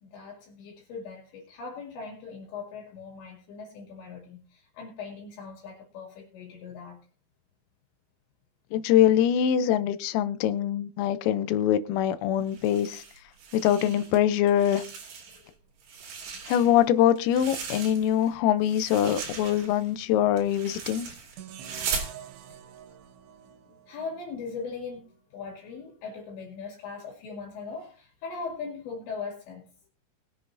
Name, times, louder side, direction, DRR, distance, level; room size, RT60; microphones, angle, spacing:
voice 1, 0.0-7.0 15.3-15.5 22.8-23.0 23.4-29.6, left 5 dB, 65° left, 4.3 m, -40 dB
voice 2, 8.7-13.0 13.5-14.8 16.5-21.1, left 10 dB, 85° left, 3.3 m, -23 dB
sound 1, 12.5-14.2 14.5-15.5 15.8-18.3 18.6-22.1, right 6 dB, 55° right, 4.2 m, -38 dB
sound 2, 21.3-24.5, right 9 dB, 85° right, 2.4 m, -46 dB
22.0 x 7.5 x 2.6 m
omnidirectional pair, 6.0 m